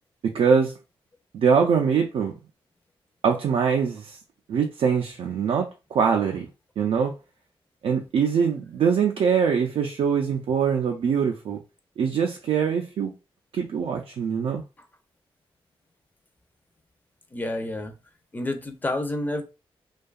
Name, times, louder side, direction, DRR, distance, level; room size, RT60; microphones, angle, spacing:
voice 1, 0.2-0.7 1.3-2.3 3.2-4.2 4.5-6.5 6.8-7.1 7.8-11.6 12.0-13.1 13.5-14.6, right 6 dB, 75° right, 0.4 m, -23 dB
voice 2, 17.3-17.9 18.3-19.4, left 1 dB, 20° left, 0.5 m, -29 dB
2.6 x 2.3 x 2.3 m
cardioid pair, 90°, 10 cm